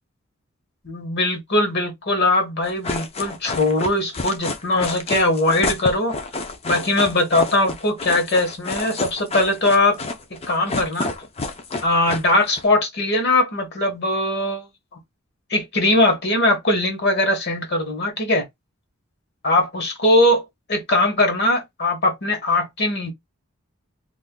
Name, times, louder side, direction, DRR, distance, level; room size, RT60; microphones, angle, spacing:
voice 1, 0.8-6.2 6.6-10.0 10.3-11.1 11.8-14.7 15.5-18.4 19.4-20.4 20.7-23.1, left 2 dB, 55° left, 1.1 m, -20 dB
sound 1, 2.6-12.6, left 3 dB, 30° left, 0.5 m, -29 dB
2.5 x 2.4 x 3.6 m
head